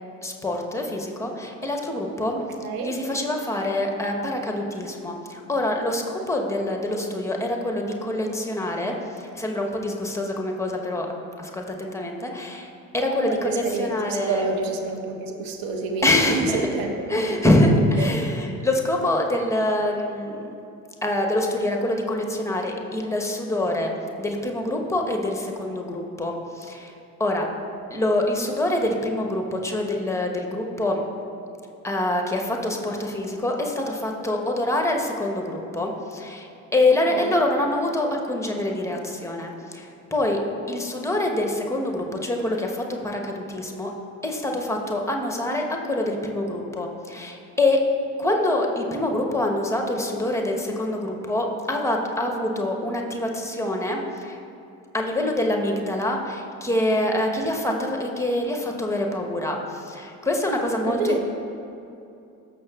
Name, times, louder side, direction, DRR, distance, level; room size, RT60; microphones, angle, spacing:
voice 1, 0.2-2.4 2.8-11.1 11.4-14.4 16.0-16.7 17.1-20.4 21.0-26.9 27.2-27.5 27.9-31.0 31.8-40.4 40.7-43.9 44.2-47.8 48.2-54.4 54.9-61.2, left 1 dB, 5° left, 1 dB, 1.1 m, -25 dB
voice 2, 2.6-2.9 13.2-17.4 18.0-18.1 37.1-37.4 60.8-61.2, right 3 dB, 50° right, 3 dB, 1.1 m, -28 dB
14.0 x 5.9 x 2.4 m, 2.6 s
figure-of-eight pair, 60°, 45 cm